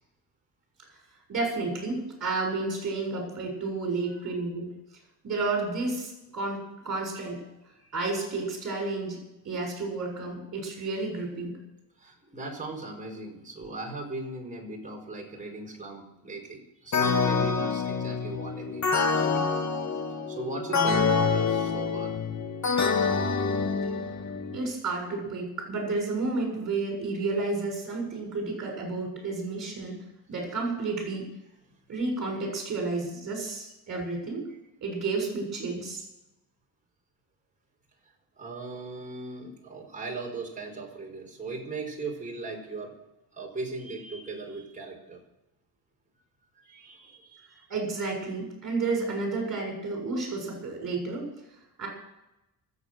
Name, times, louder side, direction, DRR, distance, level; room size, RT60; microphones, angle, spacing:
voice 1, 1.3-4.7 5.2-7.4 7.9-9.2 9.4-11.6 24.5-30.0 30.3-31.3 31.9-34.5 34.8-36.0 47.7-51.3 51.8-51.9, right 3 dB, 40° right, 1 dB, 6.9 m, -31 dB
voice 2, 4.1-4.4 12.0-19.5 20.3-22.1 23.4-23.5 38.4-42.9 43.4-45.2 46.6-47.6, right 3 dB, 20° right, 0 dB, 5.2 m, -39 dB
sound 1, 16.9-24.6, left 5 dB, 40° left, 2.0 m, -26 dB
25.0 x 8.6 x 6.5 m, 0.92 s
cardioid pair, 120°, 42 cm